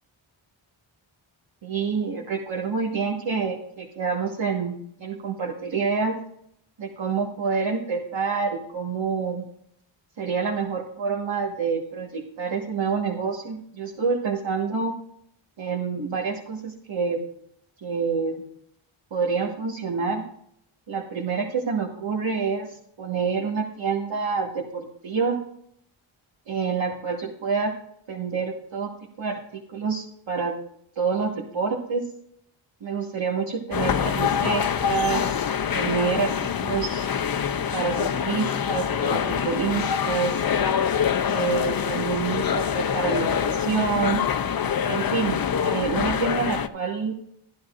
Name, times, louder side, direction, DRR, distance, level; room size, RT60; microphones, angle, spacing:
voice 1, 1.6-6.2 6.8-9.4 10.2-15.0 15.6-17.3 17.8-18.4 19.1-20.2 20.9-22.7 23.0-25.4 26.5-27.8 28.1-28.9 29.2-30.6 30.9-32.1 32.8-35.4 35.7-36.3 36.6-37.1 37.7-40.4 41.3-44.2 44.9-47.2, right 5 dB, 65° right, -1 dB, 1.6 m, -27 dB
sound 1, 33.7-46.7, left 8 dB, 45° left, 0.7 m, -25 dB
13.0 x 11.0 x 2.5 m, 0.69 s
cardioid pair, 65°, 48 cm